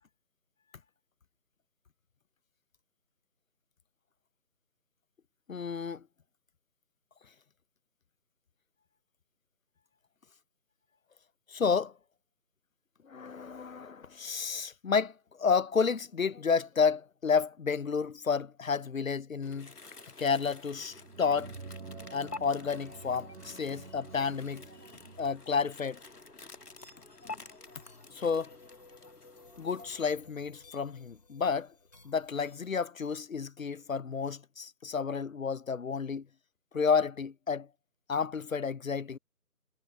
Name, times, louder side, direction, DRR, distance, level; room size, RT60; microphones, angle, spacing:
voice 1, 5.5-6.0 11.5-11.9 13.0-19.7 20.2-21.5 22.1-24.6 25.2-26.0 28.1-28.5 29.6-31.7 32.0-36.3 36.7-37.7 38.1-39.2, left 5 dB, 60° left, 0.6 m, -31 dB
sound 1, 19.4-30.0, left 3 dB, 85° left, 2.4 m, -50 dB
sound 2, 20.8-25.5, right 4 dB, 60° right, 1.1 m, -48 dB
sound 3, 25.8-32.7, left 3 dB, 25° left, 3.3 m, -58 dB
figure-of-eight pair, 180°, 45 cm